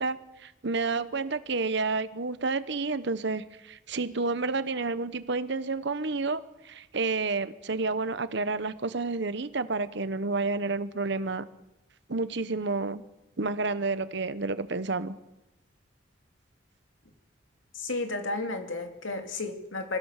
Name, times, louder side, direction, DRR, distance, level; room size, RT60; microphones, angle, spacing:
voice 1, 0.0-11.4 12.1-13.0 13.4-15.2, right 3 dB, 65° right, 13 dB, 1.0 m, -30 dB
voice 2, 17.7-20.0, left 2 dB, 85° left, 5 dB, 2.7 m, -32 dB
26.0 x 16.0 x 6.6 m, 0.98 s
head